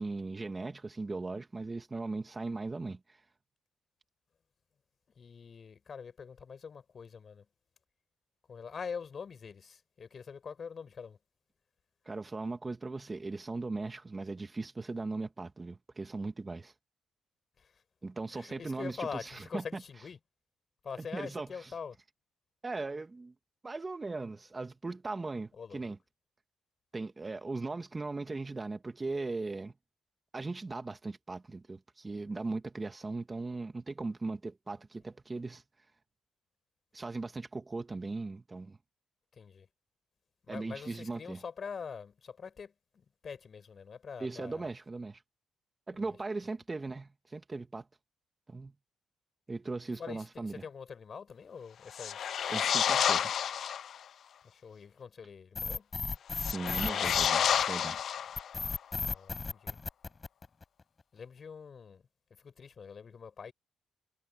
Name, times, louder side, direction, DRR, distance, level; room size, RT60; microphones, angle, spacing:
voice 1, 0.0-3.2 12.1-16.7 18.0-19.8 21.0-21.7 22.6-23.3 23.6-26.0 26.9-29.7 30.3-35.6 36.9-38.8 40.5-41.4 44.2-45.2 45.9-47.9 48.5-48.7 49.5-50.7 52.5-53.3 56.4-58.0, right 3 dB, 25° right, 2.2 m, -38 dB
voice 2, 5.2-7.4 8.5-11.2 17.6-17.7 18.3-20.2 20.8-21.9 25.6-25.8 39.4-39.7 40.5-42.7 43.2-44.7 45.9-46.1 50.0-52.3 54.5-55.9 58.9-59.8 61.1-62.0 62.4-63.5, left 6 dB, 45° left, 6.5 m, -44 dB
sound 1, 51.9-54.0 56.3-58.7, left 9 dB, 60° left, 0.4 m, -30 dB
sound 2, 55.6-57.8 58.4-60.8, left 4 dB, 30° left, 6.1 m, -35 dB
cardioid pair, 90°, 0 cm